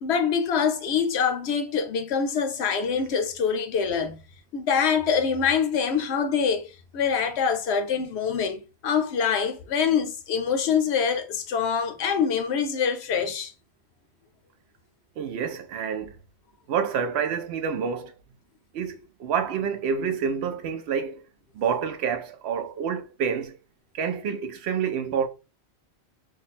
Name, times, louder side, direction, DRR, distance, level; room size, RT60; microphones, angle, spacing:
voice 1, 0.0-4.2 4.5-6.6 6.9-13.5, left 6 dB, 85° left, 0.9 m, -25 dB
voice 2, 15.2-16.1 16.7-18.1 18.7-21.2 21.5-23.6 23.9-25.3, right 7 dB, 80° right, 0.8 m, -28 dB
2.6 x 2.2 x 4.0 m
omnidirectional pair, 1.1 m